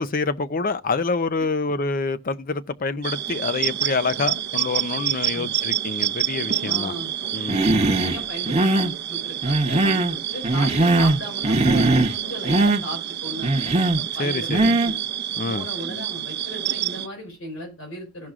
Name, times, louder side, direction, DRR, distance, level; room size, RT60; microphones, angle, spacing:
voice 1, 0.0-6.9 7.3-7.7 14.2-14.8 15.4-15.7, left 3 dB, 45° left, 0.6 m, -26 dB
sound 1, 3.0-17.1, right 11 dB, 55° right, 0.6 m, -28 dB
voice 2, 6.6-7.1 7.6-15.0 15.5-18.3, equal, 85° left, 5.0 m, -36 dB
Human voice, 7.5-8.2 8.4-8.9 9.4-10.1 10.4-11.2 11.4-12.2 12.4-12.8 13.4-14.0 14.5-14.9, right 2 dB, 30° right, 0.9 m, -20 dB
16.0 x 6.1 x 2.4 m
head